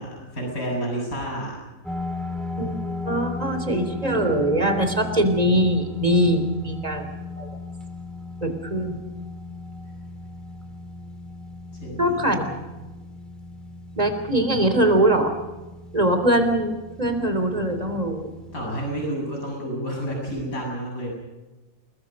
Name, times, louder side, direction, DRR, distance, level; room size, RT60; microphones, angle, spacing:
voice 1, 0.0-1.6 11.8-12.6 18.5-21.1, right 1 dB, 85° left, -1 dB, 8.2 m, -30 dB
sound 1, 1.8-19.1, left 3 dB, ahead, 3.0 m, -36 dB
voice 2, 2.5-7.1 7.4-7.5 8.4-9.0 12.0-12.4 14.0-15.3 15.9-16.7 17.0-18.3, right 1 dB, 25° right, 7 dB, 3.5 m, -22 dB
29.0 x 21.0 x 5.4 m, 1.2 s
omnidirectional pair, 1.5 m